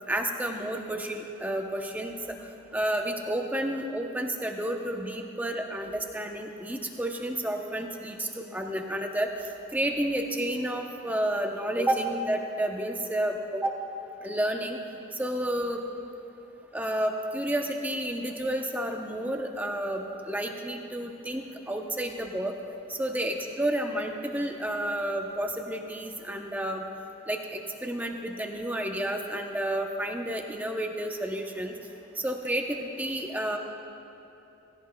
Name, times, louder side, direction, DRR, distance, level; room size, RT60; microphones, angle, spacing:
voice 1, 0.1-2.4 2.7-9.3 9.7-13.8 14.2-14.8 15.1-15.8 16.7-22.5 22.9-26.8 27.3-31.7 32.2-33.6, right 1 dB, 10° right, 3 dB, 0.6 m, -30 dB
17.0 x 16.5 x 2.2 m, 2.9 s
head